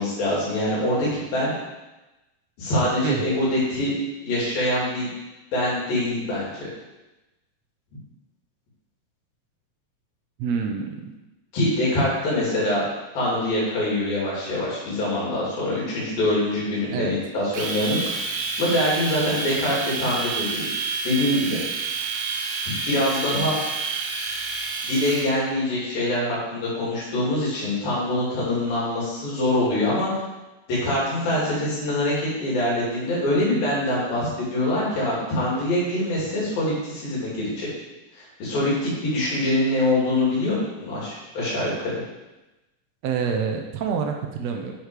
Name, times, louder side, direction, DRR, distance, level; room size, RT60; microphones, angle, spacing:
voice 1, 0.0-1.5 2.6-3.9 4.2-5.1 5.5-6.7 11.5-12.8 13.1-18.2 18.6-20.7 21.0-21.6 22.9-23.6 24.8-30.1 30.7-32.1 32.4-37.7 38.2-41.9, left 1 dB, 80° left, -6 dB, 4.5 m, -24 dB
voice 2, 10.4-11.1 16.9-17.2 43.0-44.7, right 6 dB, 80° right, 3 dB, 1.5 m, -27 dB
Domestic sounds home sounds, 17.5-25.3, right 4 dB, 60° right, 2.0 m, -29 dB
9.6 x 5.2 x 4.8 m, 1.0 s
omnidirectional pair, 4.0 m